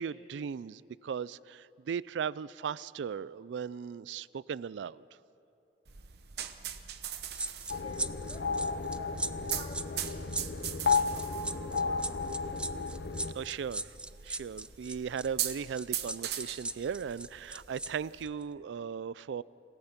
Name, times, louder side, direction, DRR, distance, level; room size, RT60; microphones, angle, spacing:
voice 1, 0.0-5.0 13.3-14.0 14.2-19.4, right 7 dB, 85° right, 20 dB, 0.4 m, -37 dB
sound 1, 5.9-18.3, right 10 dB, 60° right, 1.0 m, -41 dB
sound 2, 7.3-17.9 18.2-18.4, right 2 dB, 5° right, 0.4 m, -38 dB
sound 3, 7.7-13.3, left 5 dB, 70° left, 0.8 m, -33 dB
voice 2, 7.8-12.7, left 1 dB, 30° left, -1 dB, 2.9 m, -51 dB
27.5 x 16.5 x 5.8 m, 2.7 s
head